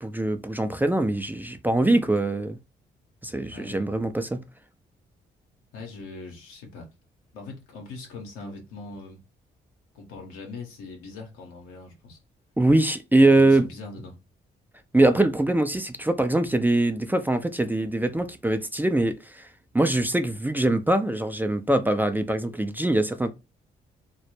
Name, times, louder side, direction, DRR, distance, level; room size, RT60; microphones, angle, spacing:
voice 1, 0.0-2.6 3.2-4.4 12.6-13.7 14.9-19.5 19.7-23.3, right 2 dB, 10° right, 0.3 m, -23 dB
voice 2, 3.5-3.9 5.7-6.9 7.3-9.2 9.9-12.2 13.2-14.2, left 3 dB, 90° left, 0.7 m, -41 dB
2.1 x 2.0 x 3.0 m
hypercardioid pair, 45°, 21 cm